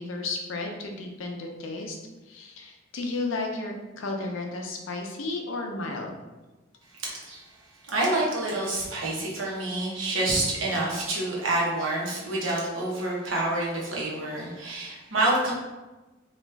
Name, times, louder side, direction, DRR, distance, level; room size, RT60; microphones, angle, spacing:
voice 1, 0.0-2.0 2.2-6.1, left 2 dB, 80° left, 2 dB, 0.5 m, -33 dB
voice 2, 7.9-15.5, right 2 dB, 80° right, -4 dB, 1.0 m, -27 dB
3.0 x 2.4 x 3.3 m, 1.1 s
head